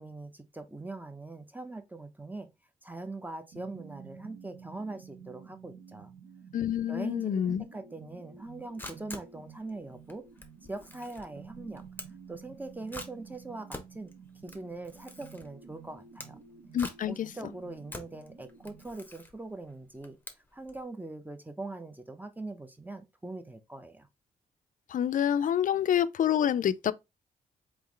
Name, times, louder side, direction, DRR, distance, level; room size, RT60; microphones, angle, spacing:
voice 1, 0.0-2.5 2.8-6.1 6.9-10.3 10.6-11.8 12.3-14.1 14.4-16.4 17.1-20.2 20.5-24.1, right 2 dB, 10° right, 0.8 m, -42 dB
sound 1, 3.5-19.0, right 6 dB, 85° right, 1.0 m, -51 dB
voice 2, 6.5-7.6 16.7-17.3 24.9-26.9, left 9 dB, 50° left, 0.4 m, -27 dB
Camera, 8.4-20.8, left 1 dB, 10° left, 1.0 m, -47 dB
3.6 x 3.1 x 3.2 m
supercardioid pair, 45°, 17 cm